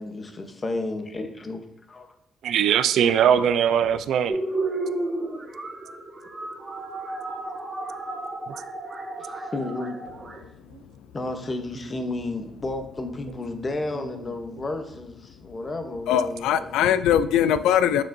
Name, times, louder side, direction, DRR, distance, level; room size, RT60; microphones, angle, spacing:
voice 1, 0.0-2.1 9.2-10.0 11.1-16.9, left 2 dB, 30° left, 6 dB, 0.9 m, -32 dB
voice 2, 2.4-4.4 8.5-8.6, right 8 dB, 75° right, 13 dB, 0.4 m, -20 dB
sound 1, 4.3-10.4, right 2 dB, 30° right, 1.5 m, -32 dB
voice 3, 16.1-18.0, left 9 dB, 90° left, 13 dB, 0.3 m, -21 dB
6.5 x 6.1 x 2.6 m, 0.81 s
cardioid pair, 90°, 0 cm